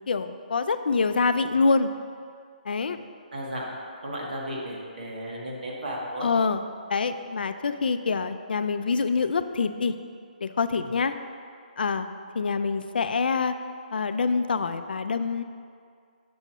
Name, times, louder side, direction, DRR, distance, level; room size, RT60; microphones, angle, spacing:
voice 1, 0.1-1.9 2.7-3.0 6.2-6.6 6.9-10.0 10.4-11.1 11.8-12.1 12.3-13.5 13.9-15.4, left 4 dB, 85° left, 10 dB, 0.4 m, -25 dB
voice 2, 3.3-3.6 4.0-6.3 10.7-10.9, equal, 65° right, -3 dB, 1.5 m, -34 dB
7.0 x 3.0 x 5.5 m, 2.2 s
hypercardioid pair, 180°, 5 cm